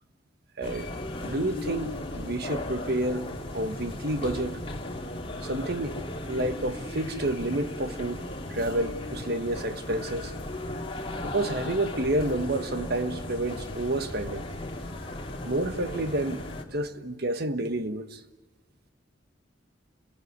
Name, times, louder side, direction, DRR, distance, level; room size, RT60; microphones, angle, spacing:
sound 1, 0.6-16.6, left 1 dB, 30° left, 2.8 m, -36 dB
voice 1, 0.6-0.9 1.2-4.6 5.4-6.0 6.3-8.2 8.5-10.3 11.2-14.5 15.4-16.4 16.7-18.2, right 1 dB, 55° right, 1.4 m, -29 dB
30.0 x 18.0 x 9.6 m
head